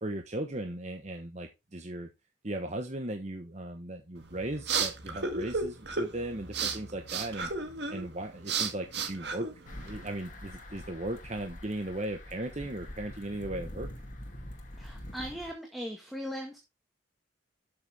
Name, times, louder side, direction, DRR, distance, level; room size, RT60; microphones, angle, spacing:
voice 1, 0.0-2.1 2.4-7.5 7.9-9.5 9.8-13.9, right 1 dB, 35° right, 5 dB, 1.2 m, -37 dB
sound 1, 4.2-10.1, right 4 dB, 55° right, 2.1 m, -34 dB
sound 2, 9.7-15.5, left 1 dB, 40° left, 2.4 m, -45 dB
voice 2, 14.8-16.6, equal, ahead, 1 dB, 1.7 m, -39 dB
12.5 x 7.0 x 3.5 m, 0.25 s
head